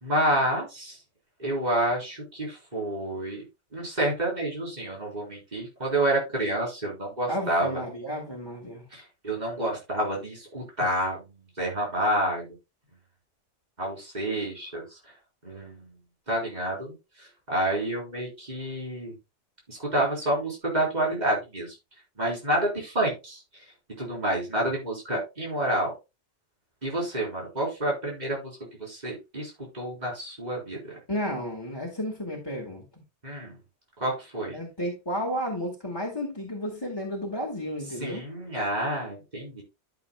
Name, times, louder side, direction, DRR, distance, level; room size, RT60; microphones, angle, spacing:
voice 1, 0.0-1.0 1.4-3.4 3.7-7.8 8.9-12.5 13.8-15.0 15.4-15.9 16.3-19.2 19.7-21.8 22.2-23.4 24.0-25.9 26.8-31.0 33.2-33.6 34.0-34.5 38.0-39.6, right 1 dB, 35° right, 3.7 m, -29 dB
voice 2, 7.3-8.8 31.1-33.0 34.5-38.2, equal, 20° left, 1.6 m, -32 dB
12.5 x 6.4 x 2.2 m
omnidirectional pair, 1.2 m